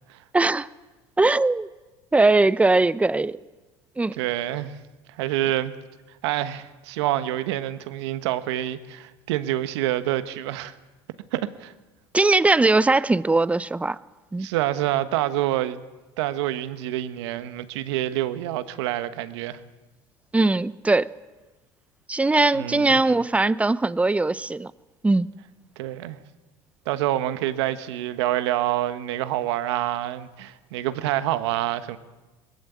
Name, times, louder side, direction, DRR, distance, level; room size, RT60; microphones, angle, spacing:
voice 1, 0.3-0.7 1.2-1.7 2.1-3.4 4.0-4.2 12.1-14.0 14.3-14.5 20.3-21.1 22.1-24.7 25.0-25.3, right 2 dB, 10° right, 0.6 m, -20 dB
voice 2, 4.2-4.7 5.2-5.7 6.2-10.7 11.3-11.7 14.4-15.8 16.2-19.6 22.5-23.0 25.8-26.2 26.9-32.0, right 14 dB, 80° right, 1.2 m, -27 dB
21.0 x 15.0 x 8.6 m
supercardioid pair, 95°, 14 cm